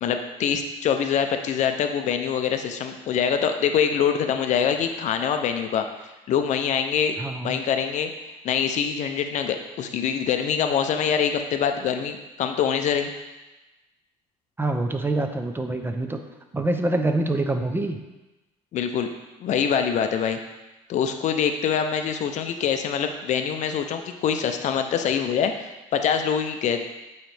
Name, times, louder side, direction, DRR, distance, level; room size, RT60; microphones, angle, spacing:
voice 1, 0.0-5.9 6.3-7.2 7.4-8.1 8.4-13.1 18.7-19.1 19.4-20.4 20.9-26.8, left 7 dB, 55° left, 6 dB, 0.5 m, -24 dB
voice 2, 7.2-7.6 14.6-16.2 16.5-18.0, right 2 dB, 15° right, 6 dB, 0.6 m, -25 dB
8.8 x 3.2 x 3.3 m, 1.1 s
supercardioid pair, 85°, 14 cm